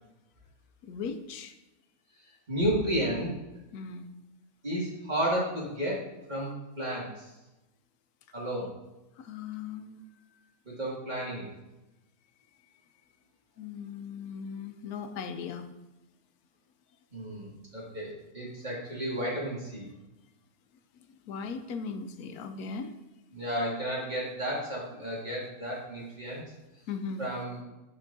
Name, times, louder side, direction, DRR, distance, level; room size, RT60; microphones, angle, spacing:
voice 1, 0.8-1.5 3.7-4.1 9.2-10.0 13.6-15.7 21.3-22.9 26.9-27.3, left 5 dB, 85° left, 8 dB, 1.1 m, -38 dB
voice 2, 2.5-3.4 4.6-7.3 8.3-8.7 10.7-11.5 17.1-19.9 23.3-26.4 27.2-27.6, right 1 dB, 30° right, -6 dB, 2.1 m, -32 dB
10.5 x 4.4 x 2.6 m, 1.0 s
omnidirectional pair, 1.6 m